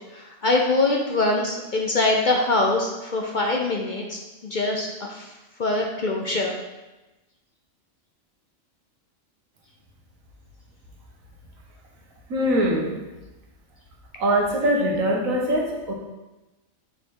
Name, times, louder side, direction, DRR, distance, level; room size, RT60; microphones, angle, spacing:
voice 1, 0.1-5.3 5.6-6.5, left 2 dB, 45° left, 0 dB, 0.7 m, -23 dB
voice 2, 12.3-13.0 14.2-15.9, equal, 85° right, 0 dB, 1.6 m, -22 dB
6.3 x 4.3 x 4.7 m, 1.1 s
omnidirectional pair, 1.4 m